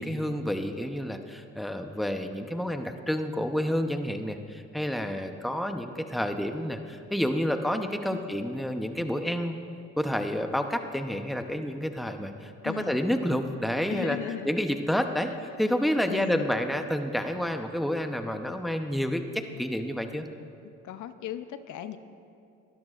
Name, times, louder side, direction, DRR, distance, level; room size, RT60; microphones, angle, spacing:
voice 1, 0.0-9.6 10.0-14.2 14.4-15.3 15.6-20.3, equal, ahead, 6 dB, 0.8 m, -29 dB
voice 2, 12.6-13.0 13.9-14.5 15.2-15.3 16.1-16.5 20.8-22.0, left 11 dB, 75° left, 11 dB, 0.7 m, -37 dB
23.5 x 13.0 x 2.5 m, 2.5 s
cardioid pair, 90°, 30 cm